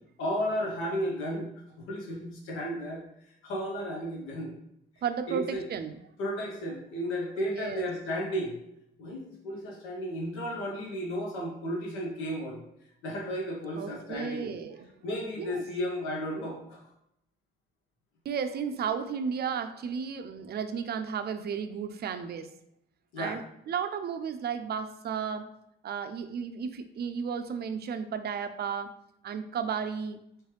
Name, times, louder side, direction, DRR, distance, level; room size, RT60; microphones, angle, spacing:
voice 1, 0.2-1.5 1.8-3.0 3.4-4.5 5.3-5.6 6.2-8.6 9.0-12.6 13.0-14.5 15.0-16.8 23.1-23.4, equal, 85° left, -1 dB, 1.0 m, -33 dB
voice 2, 5.0-6.0 7.4-7.9 13.8-14.9 15.4-15.6 18.3-22.5 23.2-25.5 25.8-28.9 29.2-30.2, right 7 dB, 55° right, 9 dB, 0.4 m, -34 dB
3.2 x 3.1 x 3.0 m, 0.76 s
supercardioid pair, 65°, 20 cm